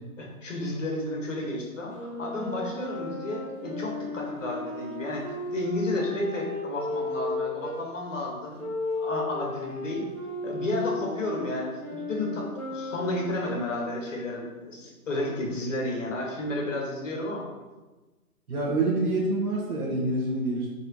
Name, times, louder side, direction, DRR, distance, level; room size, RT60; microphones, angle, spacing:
voice 1, 0.2-10.0 10.4-17.5, left 1 dB, 55° left, -1 dB, 1.8 m, -32 dB
Wind instrument woodwind instrument, 1.9-7.8 8.6-14.3, left 2 dB, 5° left, 1.6 m, -34 dB
voice 2, 18.5-20.7, right 2 dB, 70° right, -4 dB, 1.7 m, -26 dB
5.1 x 4.1 x 4.8 m, 1.2 s
hypercardioid pair, 180°, 45 cm